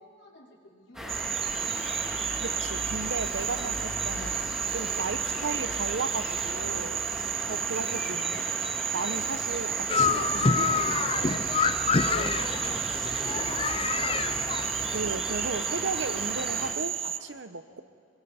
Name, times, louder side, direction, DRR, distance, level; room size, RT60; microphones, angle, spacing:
voice 1, 0.0-2.2 5.2-5.3 7.5-7.8 12.1-14.7 17.6-17.8, left 1 dB, 75° left, -5 dB, 4.7 m, -50 dB
sound 1, 0.9-16.7, equal, 5° right, 2.6 m, -37 dB
Cricket / Frog, 1.1-17.2, right 9 dB, 30° right, 0.5 m, -32 dB
voice 2, 2.4-7.0 7.4-11.7 12.2-12.5 14.9-17.8, right 4 dB, 75° right, 11 dB, 0.9 m, -35 dB
sound 2, 9.9-15.1, left 5 dB, 30° left, 0.6 m, -27 dB
27.0 x 23.0 x 4.4 m, 2.2 s
head